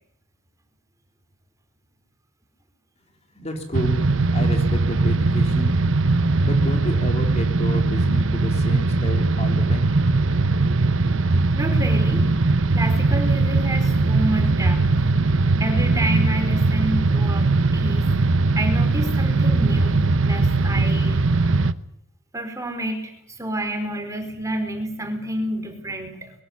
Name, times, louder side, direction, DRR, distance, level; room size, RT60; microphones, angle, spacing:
voice 1, 3.3-4.0 4.3-5.7 6.4-9.9, left 1 dB, 30° left, 4 dB, 3.4 m, -30 dB
sound 1, 3.7-21.7, right 3 dB, 70° right, 1.0 m, -20 dB
voice 2, 11.6-12.2 12.7-15.1 15.6-18.0 18.5-21.3 22.3-26.3, right 1 dB, 15° right, 5 dB, 4.6 m, -29 dB
23.5 x 15.0 x 9.8 m, 0.75 s
head